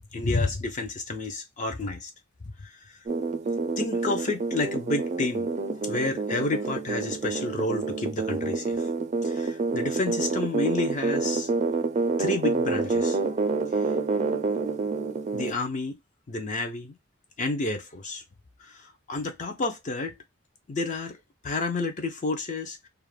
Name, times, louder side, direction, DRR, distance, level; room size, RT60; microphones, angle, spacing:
voice 1, 0.1-2.1 2.6-3.1 3.8-8.9 9.2-11.5 12.2-13.2 13.7-13.9 15.3-16.0 16.3-17.0 17.4-18.2 18.6-20.2 20.7-22.9, left 2 dB, 40° left, 0.4 m, -30 dB
sound 1, 3.1-15.5, right 4 dB, 35° right, 0.4 m, -28 dB
2.4 x 2.1 x 3.1 m
head